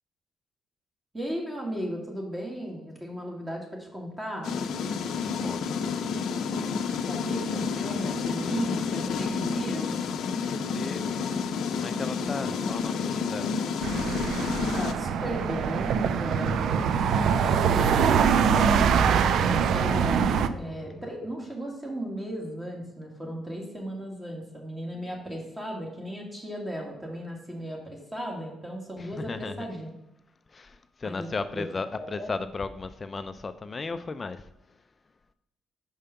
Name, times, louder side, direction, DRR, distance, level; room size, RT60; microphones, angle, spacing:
voice 1, 1.1-4.6 7.1-9.9 14.7-20.3 20.6-29.9 31.0-31.7 32.0-32.3, right 1 dB, 20° right, 1.8 m, -36 dB
sound 1, 4.4-14.9, left 5 dB, 75° left, 0.6 m, -30 dB
voice 2, 5.2-5.6 10.4-11.5 11.8-13.5 29.0-29.7 30.5-34.5, left 4 dB, 35° left, 0.4 m, -36 dB
sound 2, 13.8-20.5, right 7 dB, 75° right, 0.4 m, -23 dB
sound 3, 17.2-21.5, right 2 dB, 50° right, 1.6 m, -43 dB
5.5 x 5.1 x 5.7 m
cardioid pair, 90°, 0 cm